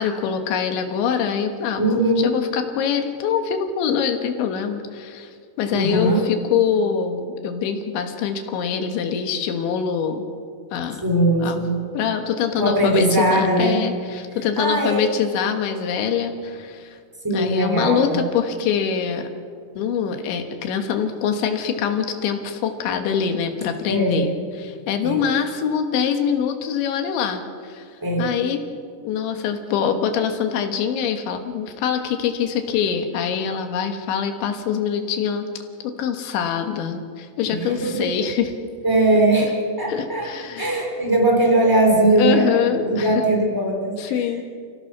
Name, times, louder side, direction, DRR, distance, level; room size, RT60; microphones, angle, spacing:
voice 1, 0.0-5.3 5.6-10.2 10.7-11.0 11.4-11.6 11.9-17.0 17.3-19.3 19.8-24.3 24.6-27.9 28.2-28.6 29.1-35.5 35.8-38.5 39.9-40.8 42.2-43.2 44.0-44.4, left 7 dB, 80° left, 6 dB, 3.7 m, -24 dB
voice 2, 1.8-2.3 5.7-6.2 11.0-11.8 12.6-13.8 14.6-15.1 17.2-18.2 23.9-24.3 25.0-25.2 28.0-28.3 37.5-38.2 38.8-39.5 39.8-44.0, right 1 dB, 5° right, 1 dB, 3.0 m, -20 dB
30.0 x 16.5 x 6.1 m, 2.1 s
omnidirectional pair, 5.3 m